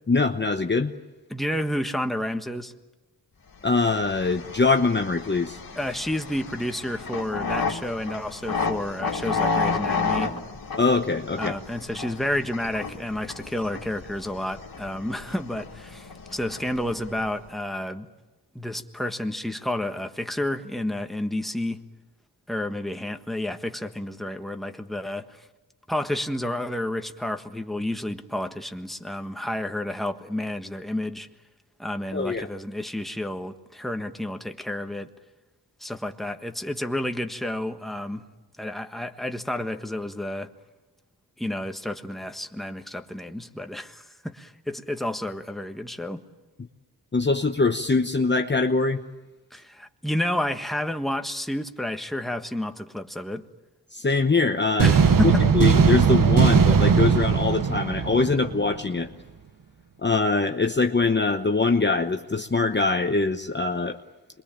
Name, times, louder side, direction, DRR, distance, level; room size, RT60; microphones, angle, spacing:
voice 1, 0.1-0.9 3.6-5.6 10.8-11.5 32.1-32.5 47.1-49.0 53.9-54.9 55.2-59.1 60.0-64.0, left 3 dB, 30° left, 1.0 m, -23 dB
voice 2, 1.3-2.7 5.7-10.3 11.4-18.1 18.5-21.8 22.5-25.3 25.9-31.3 31.8-35.1 35.8-38.2 38.6-40.5 41.4-46.2 49.5-53.4 54.8-55.4, left 1 dB, ahead, 1.5 m, -30 dB
sound 1, 3.7-17.5, left 4 dB, 60° left, 2.3 m, -32 dB
sound 2, 54.8-58.8, right 6 dB, 60° right, 1.1 m, -19 dB
27.0 x 22.5 x 8.8 m
cardioid pair, 75°, 39 cm